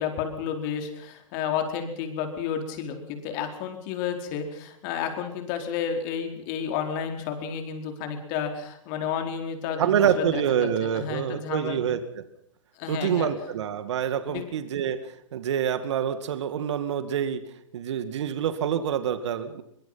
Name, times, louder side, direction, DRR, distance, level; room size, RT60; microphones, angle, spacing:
voice 1, 0.0-11.8 12.7-13.3 14.3-14.5, left 7 dB, 35° left, 5 dB, 4.4 m, -31 dB
voice 2, 9.8-12.0 12.9-17.4 17.7-19.6, right 8 dB, 60° right, 10 dB, 2.2 m, -26 dB
23.5 x 21.5 x 5.8 m, 0.72 s
hypercardioid pair, 140°, 17 cm